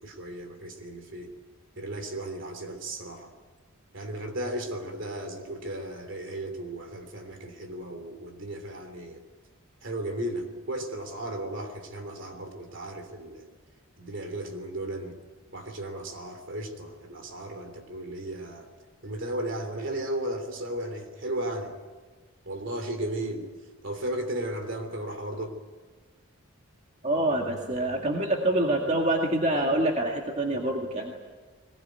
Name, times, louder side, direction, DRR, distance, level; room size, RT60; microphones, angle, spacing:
voice 1, 0.0-1.3 1.8-3.3 3.9-9.2 9.8-13.5 14.0-15.2 15.5-18.7 19.0-21.7 22.4-23.5 23.8-25.6, right 1 dB, 55° right, 7 dB, 3.2 m, -35 dB
voice 2, 27.0-31.2, right 1 dB, 30° right, 1 dB, 2.1 m, -26 dB
21.5 x 20.5 x 9.4 m, 1.3 s
head